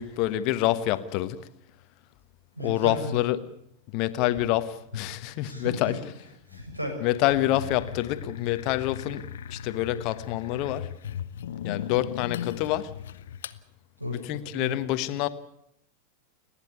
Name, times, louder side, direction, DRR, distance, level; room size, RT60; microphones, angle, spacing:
voice 1, 0.0-1.4 2.6-3.4 3.9-6.0 7.0-10.9 11.6-12.9 14.1-15.3, left 14 dB, 40° left, 1.2 m, -27 dB
voice 2, 2.6-3.2 5.4-7.0 14.0-14.8, left 1 dB, 85° right, 7.1 m, -35 dB
sound 1, 7.3-13.6, left 9 dB, 60° left, 0.9 m, -37 dB
30.0 x 10.5 x 9.5 m
figure-of-eight pair, 90°, 0 cm